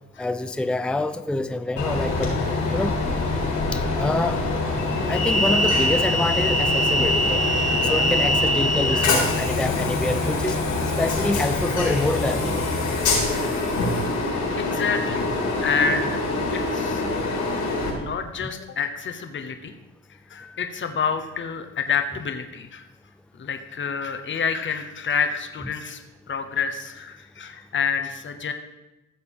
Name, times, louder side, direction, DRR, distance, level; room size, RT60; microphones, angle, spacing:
voice 1, 0.2-2.3 2.7-3.2 3.7-4.4 5.1-7.5 7.9-10.6 11.0-12.6 18.4-18.5, left 2 dB, 5° left, 10 dB, 0.5 m, -26 dB
Train, 1.8-17.9, left 2 dB, 75° left, 4.0 m, -23 dB
voice 2, 14.6-15.3 15.6-16.2 16.5-17.0 18.0-19.7 20.1-22.9 23.4-26.0 26.3-28.5, left 6 dB, 40° left, 7 dB, 1.1 m, -28 dB
14.5 x 6.8 x 5.4 m, 1.0 s
cardioid pair, 90°, 30 cm